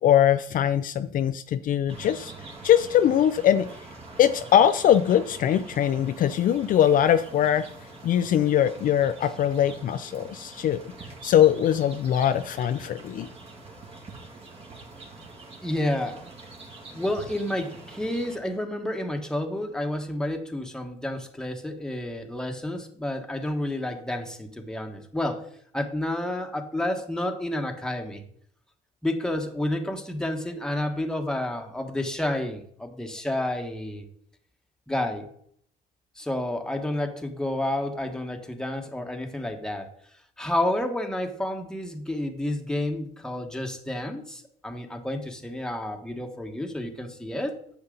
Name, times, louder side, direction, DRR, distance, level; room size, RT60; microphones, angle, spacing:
voice 1, 0.0-2.3 2.6-3.7 4.2-7.6 8.0-10.8 11.2-13.3, left 10 dB, 55° left, 10 dB, 0.5 m, -21 dB
sound 1, 1.9-18.4, right 3 dB, 35° right, 2.4 m, -45 dB
voice 2, 15.6-16.2 16.9-25.4 25.7-28.2 29.0-34.0 34.9-35.3 36.2-39.9 40.4-47.6, left 1 dB, 5° left, 4 dB, 1.4 m, -30 dB
9.8 x 7.3 x 3.9 m, 0.63 s
cardioid pair, 110°, 17 cm